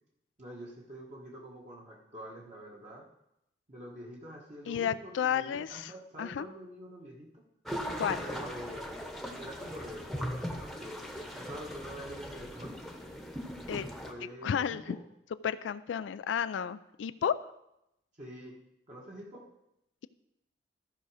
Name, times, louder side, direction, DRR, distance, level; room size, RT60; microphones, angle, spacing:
voice 1, 0.4-3.1 3.7-7.4 8.2-9.0 9.4-12.9 14.0-15.0 18.2-18.6 18.9-19.4, equal, 40° right, -3 dB, 1.4 m, -46 dB
voice 2, 4.7-5.9 6.2-6.5 8.0-8.2 13.7-13.9 14.4-15.0 15.4-17.5, left 8 dB, 85° left, 13 dB, 0.3 m, -32 dB
sound 1, 7.7-14.1, equal, ahead, 1.0 m, -39 dB
14.0 x 5.0 x 4.9 m, 0.85 s
head